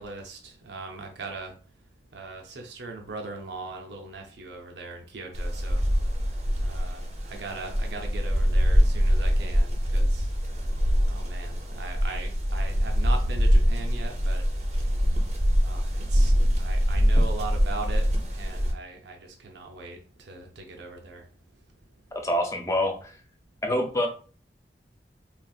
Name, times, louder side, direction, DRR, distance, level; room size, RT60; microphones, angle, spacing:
voice 1, 0.0-1.5 2.1-5.8 6.6-10.3 11.1-14.4 15.6-18.1 18.3-21.2, right 3 dB, 80° right, 3 dB, 0.6 m, -39 dB
sound 1, 5.3-18.7, equal, 40° right, 0.6 m, -24 dB
voice 2, 22.2-23.2 23.6-24.1, left 1 dB, 15° left, 3 dB, 0.5 m, -26 dB
3.9 x 2.5 x 2.4 m, 0.39 s
head